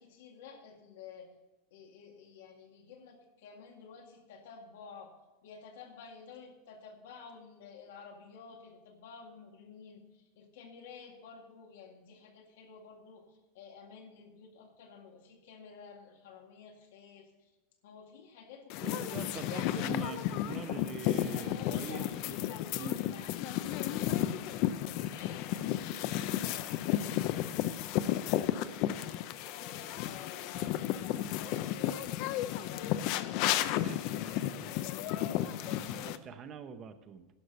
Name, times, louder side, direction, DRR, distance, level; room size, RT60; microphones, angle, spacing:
voice 1, 0.0-1.3 1.7-5.2 5.4-17.6 17.8-20.3 21.3-24.4 25.0-33.0 35.1-36.5, left 6 dB, 80° left, 2 dB, 2.1 m, -52 dB
Mysounds gwaetoy sea and wind, 18.7-36.2, left 12 dB, 45° left, 0.5 m, -33 dB
voice 2, 18.8-20.2 20.4-22.4 22.8-23.0 33.8-37.3, right 6 dB, 25° right, 10 dB, 0.7 m, -44 dB
11.5 x 6.1 x 6.7 m, 1.1 s
supercardioid pair, 170°, 0 cm